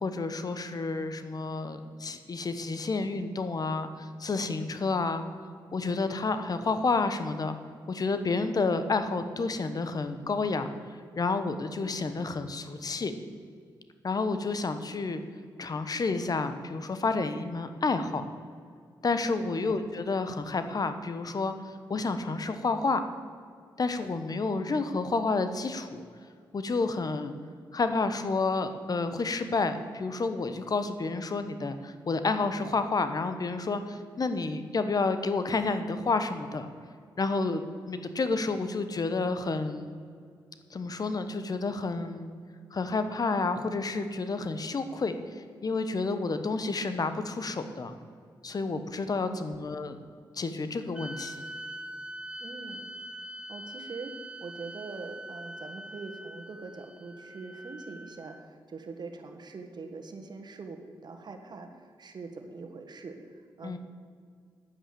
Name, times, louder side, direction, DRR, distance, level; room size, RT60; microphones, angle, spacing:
voice 1, 0.0-5.2 5.7-7.5 7.9-10.7 11.2-13.1 14.0-15.2 15.6-18.3 19.0-23.0 23.8-26.0 26.5-27.3 27.7-36.7 37.2-37.6 37.9-39.9 40.7-42.3 42.7-47.9 48.4-50.0 50.4-51.4 63.6-63.8, left 3 dB, 45° left, 9 dB, 1.1 m, -30 dB
voice 2, 49.2-49.6 52.4-52.9 53.5-54.1 54.4-63.2 63.6-63.8, right 4 dB, 55° right, 5 dB, 1.6 m, -43 dB
sound 1, 50.9-58.4, right 1 dB, 10° right, 0.7 m, -43 dB
9.9 x 9.0 x 6.9 m, 2.2 s
cardioid pair, 60°, 9 cm